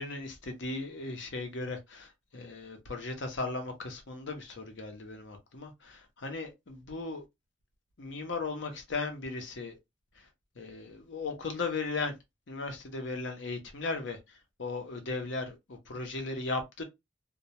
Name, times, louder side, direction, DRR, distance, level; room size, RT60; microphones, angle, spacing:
voice 1, 0.0-7.2 8.0-9.8 10.2-10.3 10.6-12.1 12.5-16.8, left 3 dB, 85° left, 0.7 m, -37 dB
2.2 x 2.1 x 2.7 m
head